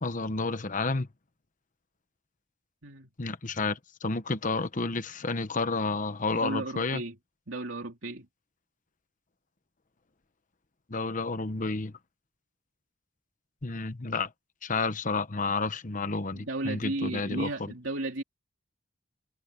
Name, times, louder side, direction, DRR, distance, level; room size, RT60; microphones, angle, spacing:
voice 1, 0.0-1.1 3.2-7.0 10.9-11.9 13.6-14.3 14.6-17.5, left 3 dB, 40° left, 1.0 m, -30 dB
voice 2, 6.3-7.2 7.5-8.3 16.3-18.2, right 2 dB, 75° right, 3.0 m, -34 dB
head